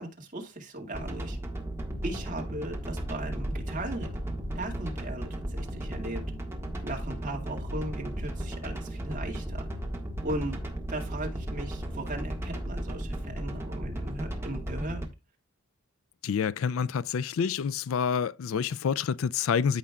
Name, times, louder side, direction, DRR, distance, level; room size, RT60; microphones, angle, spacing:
voice 1, 0.0-1.4 2.0-4.1 4.5-6.2 6.8-9.7 10.2-10.6 10.9-15.1, right 1 dB, 35° right, 2.1 m, -37 dB
sound 1, 0.9-15.0, right 1 dB, 10° right, 1.6 m, -35 dB
voice 2, 16.2-19.8, left 6 dB, 65° left, 0.4 m, -28 dB
14.5 x 5.3 x 2.4 m
head